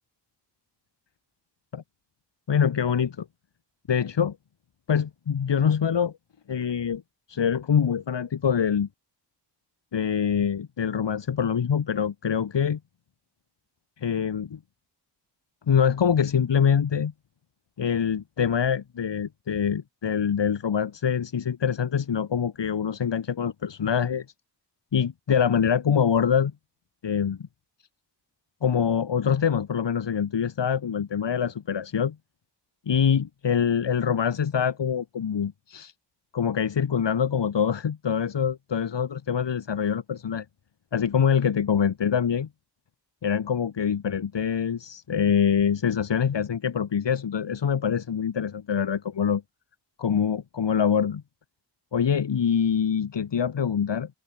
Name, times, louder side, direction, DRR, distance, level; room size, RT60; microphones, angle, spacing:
voice 1, 2.5-3.3 3.9-4.4 4.9-6.1 6.5-7.0 7.3-8.9 9.9-12.8 14.0-14.6 15.7-17.1 17.8-24.3 24.9-26.5 27.0-27.5 28.6-32.2 32.9-35.9 36.3-40.5 40.9-42.5 43.2-49.4 50.0-51.2 51.9-54.1, left 7 dB, 80° left, 2.2 m, -24 dB
wide cardioid pair, 140°, 42 cm